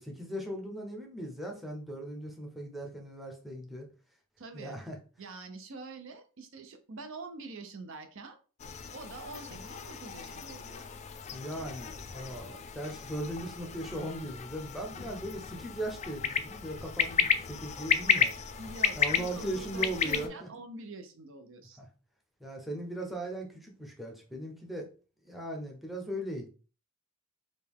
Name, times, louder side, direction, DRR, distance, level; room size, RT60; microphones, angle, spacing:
voice 1, 0.0-3.9 4.5-5.0 11.3-18.3 19.0-20.5 21.8-21.9 22.4-24.9 25.2-26.5, right 1 dB, ahead, 1 dB, 0.6 m, -38 dB
voice 2, 4.4-4.8 5.2-8.4 8.9-10.8 18.6-21.8, right 3 dB, 60° right, 7 dB, 0.6 m, -45 dB
sound 1, 8.6-20.3, left 7 dB, 30° left, 0.3 m, -33 dB
5.0 x 2.3 x 3.4 m, 0.37 s
head